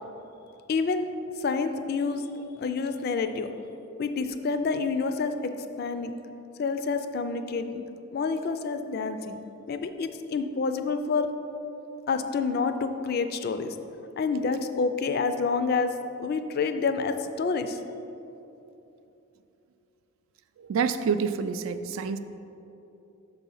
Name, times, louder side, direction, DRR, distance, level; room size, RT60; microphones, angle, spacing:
voice 1, 0.7-1.1 1.4-2.3 2.6-3.5 4.0-5.3 5.8-6.2 6.6-7.8 8.1-9.4 9.7-11.3 12.1-13.8 14.2-15.9 16.2-17.8, left 4 dB, 45° left, 9 dB, 0.3 m, -28 dB
voice 2, 20.6-22.2, right 6 dB, 70° right, 10 dB, 0.3 m, -27 dB
6.3 x 4.1 x 5.4 m, 2.9 s
head